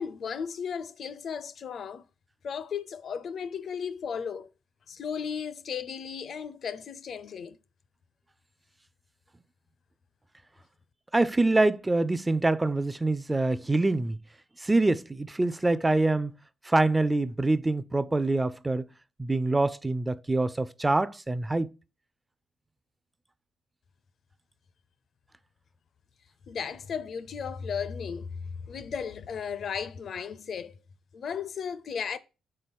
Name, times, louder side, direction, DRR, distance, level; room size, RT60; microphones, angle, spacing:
voice 1, 0.0-2.1 2.4-4.5 4.9-7.6 26.5-30.7 31.1-32.2, left 6 dB, 55° left, 0.5 m, -35 dB
voice 2, 11.1-14.2 14.6-16.3 16.6-18.9 19.2-21.7, right 2 dB, 15° right, 0.4 m, -25 dB
4.5 x 4.0 x 5.2 m
cardioid pair, 90°, 0 cm